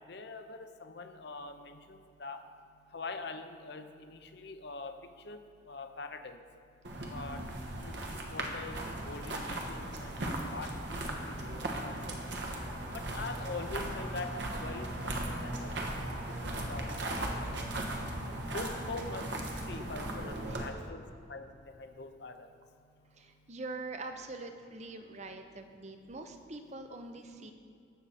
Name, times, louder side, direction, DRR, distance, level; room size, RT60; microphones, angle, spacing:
voice 1, 0.0-2.4 2.9-5.0 5.2-5.4 5.7-6.4 7.1-7.4 7.8-10.2 10.5-12.1 12.9-15.7 16.3-17.4 18.5-21.0 21.3-22.5 27.4-27.5, left 3 dB, 60° left, 7 dB, 0.8 m, -44 dB
sound 1, 6.8-20.7, right 1 dB, 65° right, 1.3 m, -37 dB
voice 2, 23.2-27.5, right 3 dB, 35° right, 7 dB, 0.7 m, -44 dB
17.0 x 6.9 x 4.2 m, 2.4 s
head